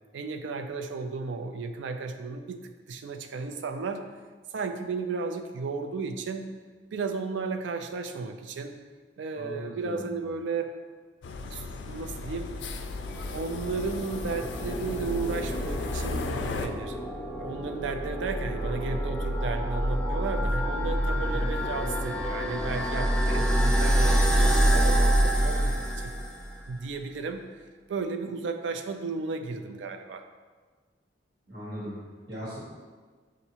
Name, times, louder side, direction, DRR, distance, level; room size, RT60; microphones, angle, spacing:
voice 1, 0.1-4.0 4.5-6.5 6.9-8.8 9.2-10.7 11.5-12.5 13.3-17.0 17.4-26.1 26.7-27.5 27.9-30.2, right 4 dB, 85° right, 6 dB, 0.4 m, -34 dB
voice 2, 9.4-10.2 21.1-21.5 31.5-32.0 32.3-32.6, equal, 65° right, -8 dB, 1.2 m, -38 dB
sound 1, 11.2-16.7, left 3 dB, 75° left, 0.3 m, -36 dB
sound 2, 12.5-26.6, equal, 5° left, 0.4 m, -27 dB
6.6 x 2.5 x 2.8 m, 1.4 s
head